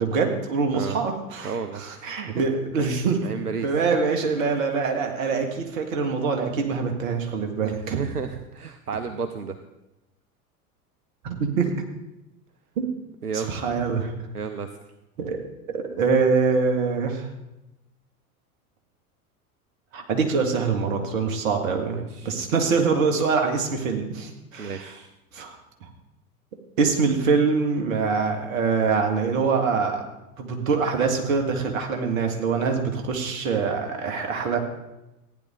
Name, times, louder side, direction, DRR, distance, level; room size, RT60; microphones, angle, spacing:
voice 1, 0.0-3.2 3.6-8.0 11.2-11.7 12.8-12.9 13.3-14.1 15.2-15.4 15.7-17.3 19.9-24.9 25.3-25.9 26.8-30.0 30.4-34.6, right 5 dB, 60° right, 4 dB, 2.1 m, -24 dB
voice 2, 1.4-2.1 2.8-3.0 3.2-3.7 7.6-9.6 13.2-13.5 14.3-14.7 21.9-22.4 24.6-25.1, right 6 dB, 85° right, 8 dB, 0.7 m, -32 dB
15.0 x 9.9 x 3.8 m, 0.95 s
figure-of-eight pair, 80°, 45 cm